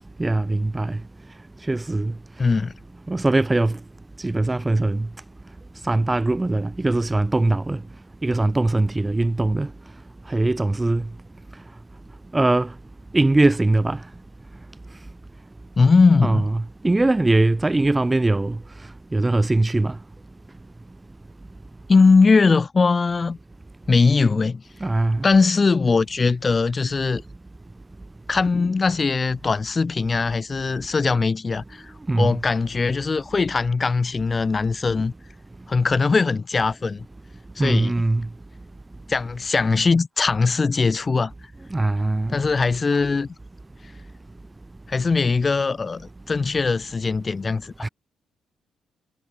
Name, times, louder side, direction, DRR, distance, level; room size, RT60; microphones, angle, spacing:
voice 1, 0.2-1.0 1.7-2.1 3.1-3.8 4.2-5.1 5.8-7.8 8.2-9.7 10.3-11.0 12.3-12.7 13.1-14.0 16.2-18.6 19.1-20.0 24.8-25.3 32.1-32.4 37.6-38.3 41.7-42.4 47.8-47.9, right 2 dB, 15° right, 1.5 m, -21 dB
voice 2, 2.4-2.7 15.8-16.5 21.9-23.4 23.9-24.6 25.2-27.2 28.3-35.1 35.7-37.0 37.6-37.9 39.1-41.3 42.3-43.3 44.9-47.9, left 4 dB, 30° left, 2.9 m, -20 dB
cardioid pair, 125°, 0 cm